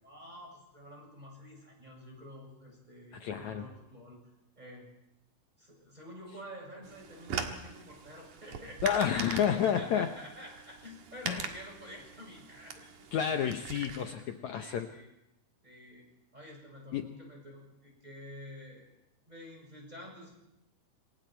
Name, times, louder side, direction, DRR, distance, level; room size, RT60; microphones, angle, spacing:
voice 1, 0.0-4.2 4.6-4.9 5.6-8.9 9.5-13.1 14.2-14.3 14.6-15.1 15.6-18.9 19.3-20.3, equal, 10° right, -1 dB, 7.3 m, -49 dB
voice 2, 3.1-3.7 8.8-10.1 11.3-11.5 13.1-14.9 16.9-17.1, left 8 dB, 70° left, 6 dB, 1.8 m, -30 dB
sound 1, 6.8-14.1, right 6 dB, 60° right, 3.0 m, -42 dB
28.0 x 24.5 x 4.5 m, 0.85 s
omnidirectional pair, 4.4 m